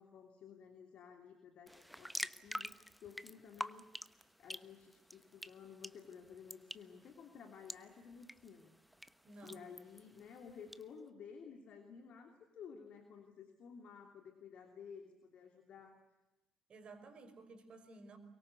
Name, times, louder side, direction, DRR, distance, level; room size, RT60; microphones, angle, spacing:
voice 1, 0.0-4.0 4.4-8.7 9.4-16.0, left 6 dB, 55° left, 4 dB, 2.9 m, -54 dB
sound 1, 1.7-10.8, equal, ahead, 1.1 m, -49 dB
voice 2, 9.2-9.6 16.7-18.2, right 3 dB, 45° right, 7 dB, 5.4 m, -54 dB
24.0 x 23.0 x 8.3 m, 1.0 s
figure-of-eight pair, 50°, 2 cm